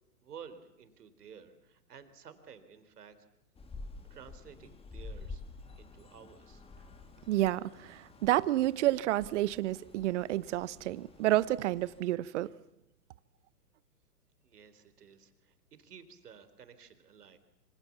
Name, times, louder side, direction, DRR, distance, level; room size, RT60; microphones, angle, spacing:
voice 1, 0.2-3.2 4.1-5.4 5.8-6.7 14.4-17.4, right 7 dB, 70° right, 3.8 m, -53 dB
sound 1, 3.5-12.0, left 3 dB, 10° left, 2.3 m, -50 dB
voice 2, 7.3-12.5, right 15 dB, 50° right, 1.0 m, -30 dB
26.0 x 26.0 x 7.3 m
hypercardioid pair, 125°, 47 cm